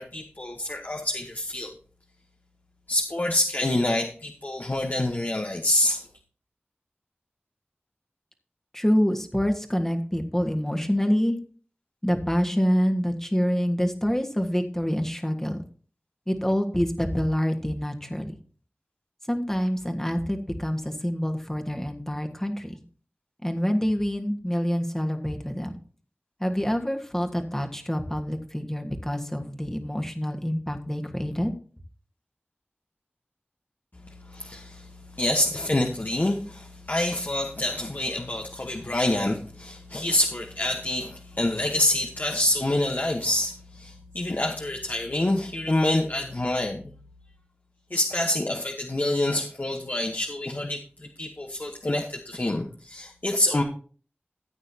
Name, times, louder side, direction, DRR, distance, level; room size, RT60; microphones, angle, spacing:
voice 1, 0.0-1.7 2.9-6.0 34.3-34.9 35.1-46.8 47.9-53.6, left 1 dB, 45° left, 2 dB, 1.2 m, -27 dB
voice 2, 8.7-11.4 12.0-15.6 16.3-18.3 19.3-22.8 23.4-25.8 26.4-31.5, equal, 10° left, 3 dB, 1.6 m, -26 dB
14.5 x 8.9 x 2.9 m, 0.42 s
wide cardioid pair, 55°, 4 cm